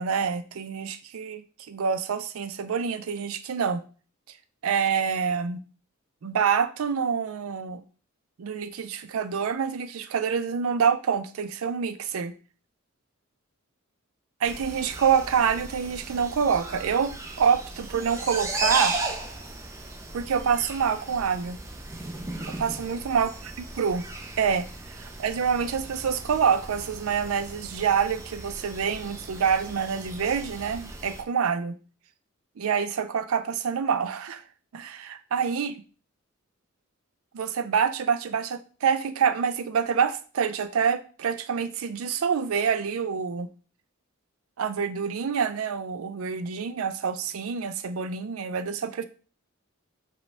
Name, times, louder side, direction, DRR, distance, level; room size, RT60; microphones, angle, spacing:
voice 1, 0.0-3.8 4.6-5.6 6.2-7.8 8.4-12.3 14.4-17.1 17.4-18.9 20.1-21.6 22.5-23.3 23.8-24.0 24.4-31.7 32.6-34.4 34.7-35.7 37.3-43.5 44.6-49.0, right 6 dB, 80° right, 0.4 m, -26 dB
sound 1, 14.4-31.2, right 2 dB, 15° right, 0.5 m, -36 dB
5.0 x 2.2 x 3.3 m
head